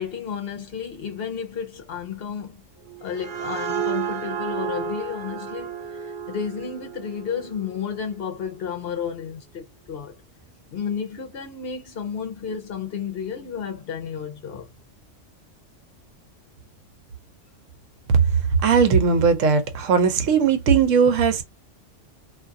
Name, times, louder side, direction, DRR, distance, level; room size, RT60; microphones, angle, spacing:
voice 1, 0.0-2.6 3.0-10.1 10.7-14.7, left 7 dB, 60° left, 0.8 m, -32 dB
sound 1, 2.8-8.3, right 7 dB, 50° right, 0.6 m, -32 dB
voice 2, 18.6-21.4, right 6 dB, 80° right, 1.0 m, -18 dB
2.5 x 2.3 x 2.5 m
omnidirectional pair, 1.3 m